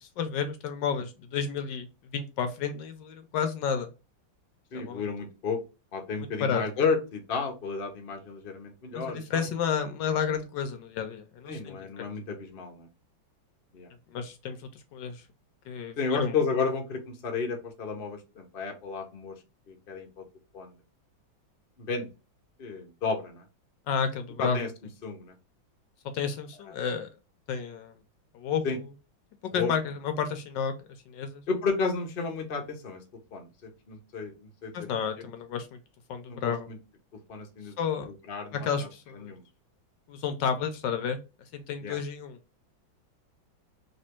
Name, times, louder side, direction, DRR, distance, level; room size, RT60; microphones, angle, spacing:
voice 1, 0.0-1.9 2.1-3.9 4.7-5.0 6.4-6.6 8.9-12.1 14.1-14.6 14.9-15.2 15.7-16.4 23.9-24.6 26.1-27.1 27.5-27.9 28.3-28.6 29.4-30.7 31.1-31.4 34.7-35.7 36.1-36.7 37.8-38.1 38.5-39.3 40.1-41.2 41.5-42.4, left 7 dB, 75° left, 7 dB, 1.2 m, -31 dB
voice 2, 4.7-5.6 5.9-9.5 11.5-12.9 13.7-13.9 16.0-19.3 19.7-20.2 20.5-20.8 21.8-22.1 22.6-23.5 24.4-24.7 25.0-25.3 28.6-28.8 29.5-29.7 31.5-33.0 33.3-34.9 35.2-35.3 36.3-36.8 37.3-37.7 38.1-38.9 39.1-39.4 41.8-42.0, left 4 dB, 45° left, 2 dB, 0.7 m, -32 dB
3.3 x 2.9 x 4.3 m, 0.30 s
omnidirectional pair, 2.2 m